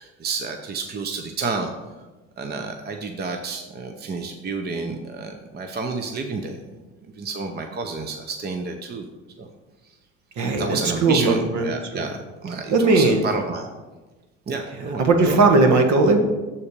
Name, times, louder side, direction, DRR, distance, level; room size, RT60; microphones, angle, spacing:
voice 1, 0.0-1.7 2.4-6.6 7.2-9.1 9.4-9.5 10.6-13.7 14.5-15.4, right 4 dB, 30° right, 5 dB, 0.8 m, -30 dB
voice 2, 10.4-12.0 12.7-13.2 15.0-16.2, right 3 dB, 60° right, 5 dB, 1.4 m, -18 dB
7.2 x 4.2 x 6.7 m, 1.2 s
cardioid pair, 100°, 32 cm